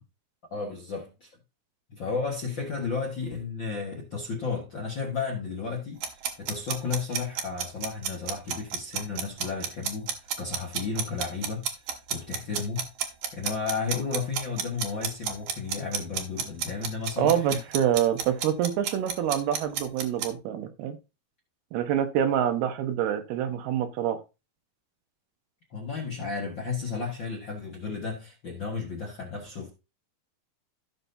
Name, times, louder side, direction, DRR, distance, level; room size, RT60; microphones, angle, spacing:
voice 1, 0.5-1.3 1.9-6.0 6.4-11.6 12.1-12.9 13.3-17.6 25.7-29.7, left 5 dB, 55° left, 1.3 m, -33 dB
sound 1, 6.0-20.3, right 8 dB, 65° right, 2.6 m, -31 dB
voice 2, 17.2-21.0 21.7-24.2, right 10 dB, 85° right, 3.2 m, -26 dB
15.0 x 6.0 x 2.7 m
omnidirectional pair, 4.4 m